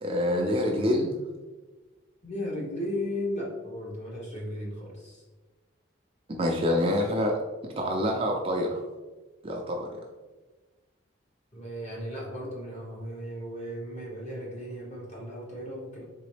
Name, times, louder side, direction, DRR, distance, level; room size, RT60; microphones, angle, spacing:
voice 1, 0.0-1.1 6.4-8.8 9.4-10.0, left 1 dB, 30° right, 0 dB, 0.4 m, -27 dB
voice 2, 2.2-5.2 11.5-16.0, left 1 dB, 35° left, -4 dB, 1.2 m, -35 dB
3.9 x 3.7 x 3.3 m, 1.2 s
head